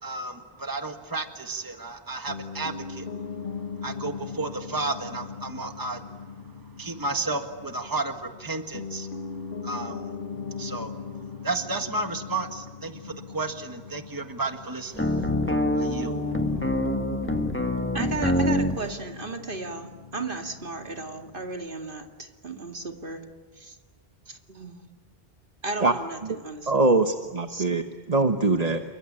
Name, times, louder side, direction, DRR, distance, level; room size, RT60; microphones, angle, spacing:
voice 1, 0.0-9.2 9.6-16.7, right 3 dB, 20° right, 7 dB, 1.7 m, -33 dB
Piano, 2.3-21.7, left 5 dB, 55° left, 1.2 m, -39 dB
sound 1, 15.0-18.8, left 1 dB, 10° left, 1.4 m, -25 dB
voice 2, 17.9-23.3 23.5-23.8 24.3-24.8 25.6-26.9 27.5-27.7, right 3 dB, 60° right, 5 dB, 2.4 m, -35 dB
voice 3, 26.7-28.8, right 3 dB, 40° right, 7 dB, 1.2 m, -22 dB
28.5 x 23.5 x 8.8 m, 1.4 s
omnidirectional pair, 1.0 m